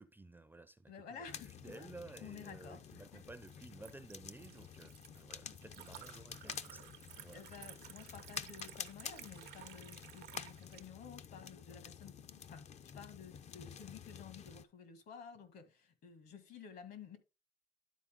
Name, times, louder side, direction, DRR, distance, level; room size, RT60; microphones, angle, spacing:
voice 1, 0.0-1.3 1.6-7.4, right 2 dB, 10° right, 0.5 m, -54 dB
voice 2, 0.9-1.9 2.2-3.2 5.4-5.6 7.3-17.2, left 7 dB, 70° left, 1.9 m, -53 dB
sound 1, 1.3-14.6, left 7 dB, 40° left, 0.5 m, -50 dB
Liquid, 2.4-10.8, right 12 dB, 75° right, 0.7 m, -56 dB
11.5 x 4.3 x 3.7 m
cardioid pair, 110°, 17 cm